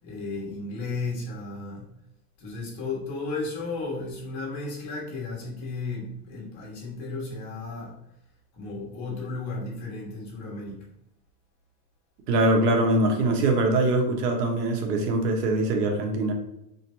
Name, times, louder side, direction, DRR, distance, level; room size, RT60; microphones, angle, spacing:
voice 1, 0.0-1.9 2.4-7.9 8.5-10.8, left 3 dB, 40° left, -4 dB, 1.5 m, -34 dB
voice 2, 12.3-16.3, right 2 dB, 90° right, 2 dB, 1.2 m, -23 dB
3.9 x 2.5 x 4.4 m, 0.82 s
supercardioid pair, 160°, 46 cm